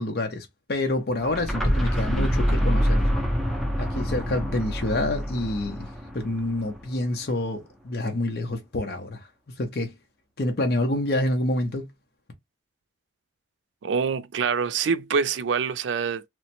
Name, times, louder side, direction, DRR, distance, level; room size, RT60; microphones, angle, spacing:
voice 1, 0.0-3.1 3.8-9.9 10.4-11.9, left 1 dB, 55° left, 0.7 m, -28 dB
sound 1, 1.2-7.0, equal, ahead, 0.6 m, -26 dB
voice 2, 13.8-16.2, right 6 dB, 75° right, 0.4 m, -25 dB
3.1 x 2.1 x 2.8 m
head